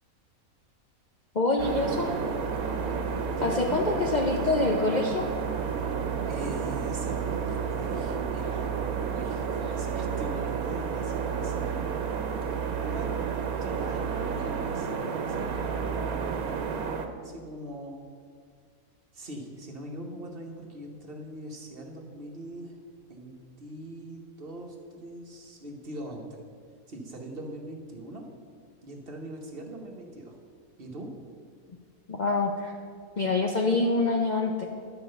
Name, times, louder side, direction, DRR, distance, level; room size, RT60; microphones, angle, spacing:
voice 1, 1.3-2.1 3.4-5.3 32.1-32.7 33.2-34.7, left 3 dB, 45° left, 0 dB, 0.6 m, -26 dB
sound 1, 1.6-17.1, right 6 dB, 85° right, 1.3 m, -31 dB
voice 2, 3.3-3.8 5.8-5.9 6.3-8.6 9.0-11.7 12.8-13.1 13.6-15.0 15.3-18.0 19.1-22.8 23.1-26.4 26.9-28.3 28.8-30.4 30.8-31.1, right 1 dB, 45° right, 1 dB, 1.2 m, -41 dB
11.5 x 4.7 x 6.5 m, 2.1 s
omnidirectional pair, 1.5 m